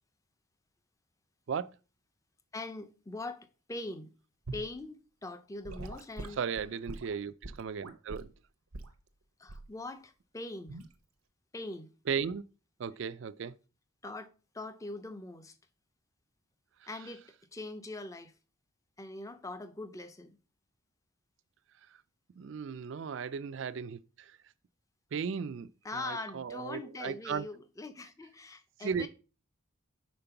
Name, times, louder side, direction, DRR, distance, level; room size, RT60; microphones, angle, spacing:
voice 1, 2.5-4.1 4.5-6.4 9.4-10.8 11.5-11.9 14.0-14.3 14.5-15.6 16.9-18.3 19.0-20.4 25.8-29.1, left 2 dB, 15° left, 0.5 m, -42 dB
Gurgling / Sink (filling or washing) / Liquid, 4.5-4.7 5.6-8.3 8.7-9.0 9.5-9.8 10.7-10.9, right 2 dB, 90° right, 0.8 m, -43 dB
voice 2, 6.4-8.3 12.1-12.4 12.8-13.6 16.8-16.9 21.9-22.0 22.4-24.4 25.1-27.5 28.8-29.1, right 6 dB, 60° right, 0.3 m, -36 dB
5.2 x 4.5 x 5.7 m
head